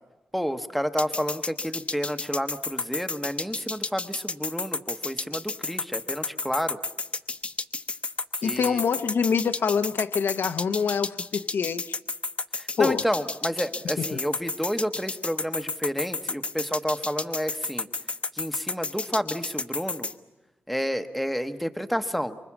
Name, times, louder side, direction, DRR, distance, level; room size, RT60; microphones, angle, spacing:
voice 1, 0.3-6.8 8.4-8.8 12.5-17.9 18.3-20.1 20.7-22.4, equal, ahead, 1.0 m, -30 dB
sound 1, 1.0-20.1, left 3 dB, 30° left, 0.9 m, -31 dB
voice 2, 8.4-12.0 12.8-13.1, left 6 dB, 65° left, 0.8 m, -25 dB
26.0 x 24.5 x 7.2 m
wide cardioid pair, 145°, 4 cm